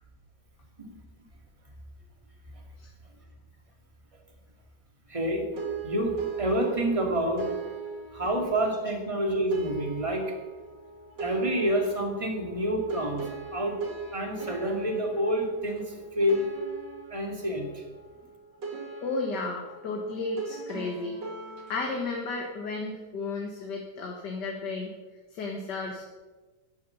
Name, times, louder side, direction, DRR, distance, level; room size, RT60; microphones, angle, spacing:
voice 1, 5.1-5.4 5.8-7.6 8.1-10.2 11.2-13.8 14.1-16.5 17.1-17.8, right 1 dB, 20° right, 1 dB, 2.3 m, -28 dB
sound 1, 5.5-22.0, right 5 dB, 85° right, 2.5 m, -40 dB
voice 2, 19.0-21.2 21.7-24.9 25.3-26.0, left 3 dB, 75° left, 1 dB, 2.1 m, -33 dB
13.5 x 11.0 x 5.7 m, 1.3 s
omnidirectional pair, 1.8 m